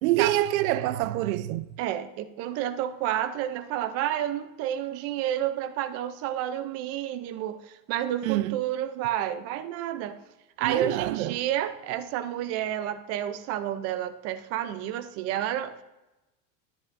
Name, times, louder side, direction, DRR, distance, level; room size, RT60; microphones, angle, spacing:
voice 1, 0.0-1.7 8.2-8.6 10.6-11.4, right 15 dB, 85° right, 0.6 m, -26 dB
voice 2, 1.8-10.2 10.6-15.8, right 11 dB, 40° right, 0.6 m, -30 dB
10.5 x 10.5 x 2.6 m
supercardioid pair, 155°, 40 cm